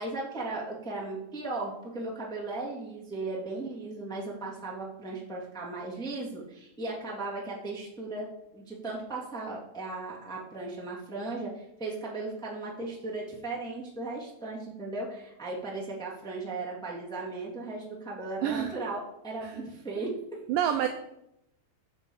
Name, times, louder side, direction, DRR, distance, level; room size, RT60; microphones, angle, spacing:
voice 1, 0.0-20.4, right 3 dB, ahead, -4 dB, 1.6 m, -36 dB
voice 2, 18.4-18.7 19.4-19.5 20.5-20.9, right 10 dB, 80° right, 7 dB, 2.0 m, -27 dB
7.8 x 7.7 x 7.3 m, 0.82 s
omnidirectional pair, 4.6 m